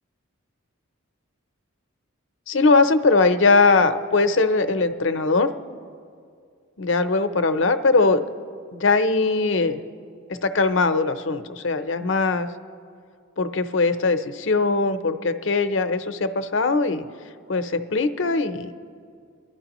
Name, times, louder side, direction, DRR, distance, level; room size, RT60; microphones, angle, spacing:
voice 1, 2.5-5.5 6.8-8.2 8.7-9.8 10.4-12.5 13.4-17.0 17.5-18.7, left 3 dB, 60° left, 9 dB, 0.6 m, -20 dB
29.5 x 11.0 x 3.0 m, 2.3 s
head